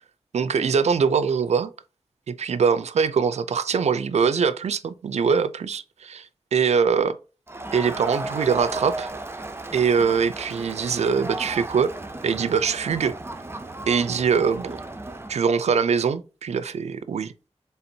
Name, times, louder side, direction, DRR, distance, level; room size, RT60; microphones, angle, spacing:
voice 1, 0.3-1.7 2.3-6.3 6.5-7.2 7.7-9.1 9.7-11.9 12.2-13.1 13.9-14.8 15.3-17.3, right 6 dB, 75° right, 0.4 m, -22 dB
Crowd, 7.5-15.4, right 2 dB, 20° right, 0.5 m, -35 dB
4.3 x 3.4 x 2.7 m
wide cardioid pair, 75°, 11 cm